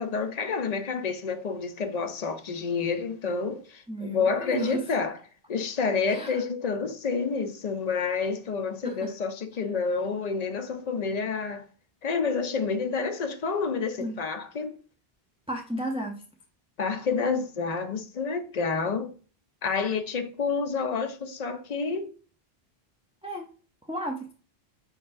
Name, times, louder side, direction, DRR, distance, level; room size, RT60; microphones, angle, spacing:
voice 1, 0.0-5.2 5.5-11.6 12.0-14.8 16.8-19.1 19.6-22.1, left 5 dB, 50° left, 0.6 m, -29 dB
voice 2, 3.9-4.8 6.1-6.4 8.8-9.1 14.0-14.1 15.5-16.2 23.2-23.5 23.9-24.3, right 1 dB, 10° right, 0.4 m, -33 dB
5.3 x 3.9 x 2.5 m
omnidirectional pair, 1.0 m